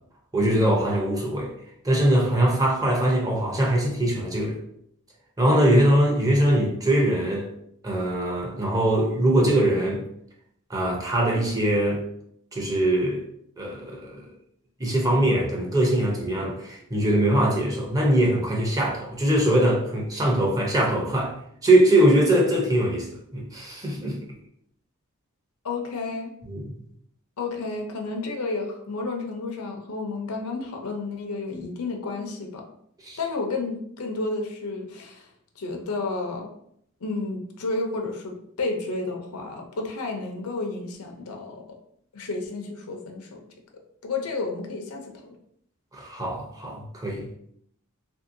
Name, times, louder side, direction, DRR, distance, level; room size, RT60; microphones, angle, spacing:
voice 1, 0.3-1.5 1.8-4.6 5.4-7.5 7.8-10.0 10.7-12.0 12.5-13.2 13.6-14.3 14.8-21.3 21.6-24.2 26.5-26.7 33.0-33.2 45.9-47.3, right 1 dB, 15° right, -1 dB, 0.6 m, -22 dB
voice 2, 25.6-26.3 27.4-32.6 33.2-35.3 35.6-36.5 37.0-41.6 42.1-43.4 44.0-45.4, left 3 dB, 85° left, 2 dB, 0.6 m, -31 dB
2.9 x 2.7 x 2.6 m, 0.70 s
head